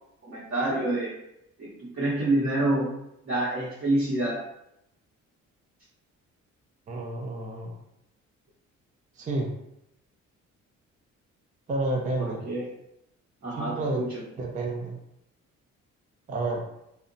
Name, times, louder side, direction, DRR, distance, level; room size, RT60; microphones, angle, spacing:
voice 1, 0.2-1.1 1.6-2.9 3.2-4.4 12.2-12.6 13.4-14.2, right 1 dB, 45° right, -8 dB, 0.9 m, -27 dB
voice 2, 6.9-7.8 9.2-9.5 11.7-12.4 13.6-14.0 14.4-15.0 16.3-16.7, right 2 dB, 25° right, 1 dB, 0.4 m, -30 dB
2.7 x 2.1 x 2.6 m, 0.83 s
cardioid pair, 90°, 30 cm